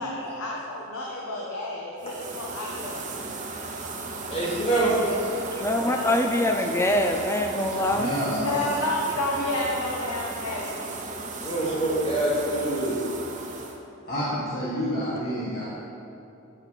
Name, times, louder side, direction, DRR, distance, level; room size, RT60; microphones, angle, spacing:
voice 1, 0.0-3.0 4.9-5.2 5.7-6.2 7.7-7.9 8.4-10.8, left 1 dB, 75° left, -3 dB, 1.1 m, -31 dB
sound 1, 2.0-13.8, right 3 dB, 35° right, 0.8 m, -36 dB
voice 2, 4.3-5.0 11.4-13.0, right 2 dB, 25° left, -7 dB, 2.5 m, -25 dB
voice 3, 5.5-8.1, left 1 dB, 10° left, 3 dB, 0.4 m, -24 dB
voice 4, 7.9-8.7 14.0-15.6, equal, 45° left, -8 dB, 1.5 m, -29 dB
11.5 x 7.2 x 4.1 m, 2.8 s
head